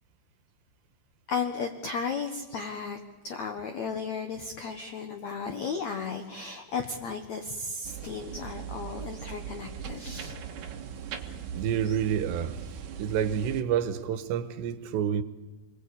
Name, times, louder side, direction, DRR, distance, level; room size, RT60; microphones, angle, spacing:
voice 1, 1.3-3.0 3.2-10.3 11.8-12.0, left 5 dB, 70° left, 1.7 m, -34 dB
sound 1, 7.8-13.6, right 8 dB, 60° right, 2.4 m, -40 dB
voice 2, 11.6-12.6 13.0-15.2, right 9 dB, 80° right, 3.2 m, -28 dB
29.0 x 21.0 x 8.5 m
omnidirectional pair, 5.2 m